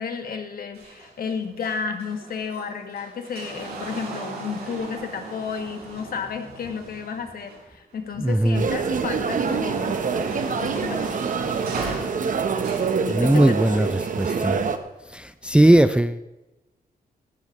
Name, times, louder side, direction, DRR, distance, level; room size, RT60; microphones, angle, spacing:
voice 1, 0.0-10.0 10.6-11.2 13.0-14.0, left 6 dB, 70° left, 5 dB, 1.8 m, -32 dB
sound 1, 0.7-7.9 8.4-13.0 14.0-14.5 15.4-15.5, right 3 dB, 80° right, 5.5 m, -38 dB
voice 2, 8.2-8.6 13.1-13.9 14.2-14.6 15.1-16.2, right 1 dB, 5° right, 12 dB, 0.4 m, -18 dB
sound 2, 8.5-14.8, right 5 dB, 55° right, 1.1 m, -25 dB
17.5 x 12.5 x 3.2 m, 1.0 s
wide cardioid pair, 110°, 16 cm